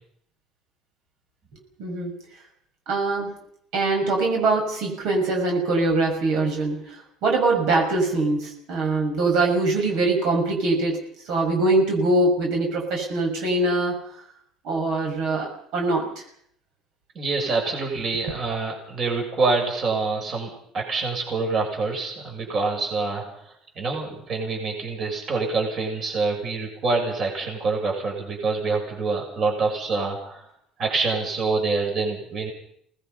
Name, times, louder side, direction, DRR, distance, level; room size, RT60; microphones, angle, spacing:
voice 1, 1.8-2.1 2.9-3.3 3.7-14.0 14.6-16.2, right 2 dB, 65° right, 1 dB, 6.4 m, -23 dB
voice 2, 17.2-30.5 30.8-32.5, right 3 dB, 40° right, 2 dB, 7.2 m, -26 dB
28.5 x 20.0 x 5.6 m, 0.67 s
cardioid pair, 145°, 0 cm